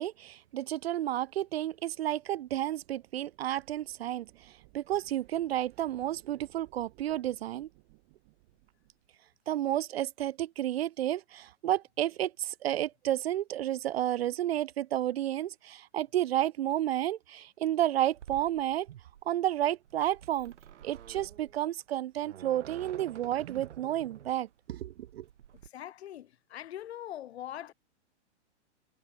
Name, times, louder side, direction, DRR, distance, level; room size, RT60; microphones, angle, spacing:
voice 1, 0.0-7.7 9.5-19.0 19.3-20.5 20.8-25.2, right 12 dB, 60° right, 0.5 m, -31 dB
sound 1, 1.0-9.1, right 31 dB, 25° right, 2.2 m, -62 dB
sound 2, 18.1-25.7, right 10 dB, 80° right, 1.5 m, -50 dB
voice 2, 25.7-27.7, left 12 dB, 65° left, 0.8 m, -42 dB
hypercardioid pair, 170°, 35 cm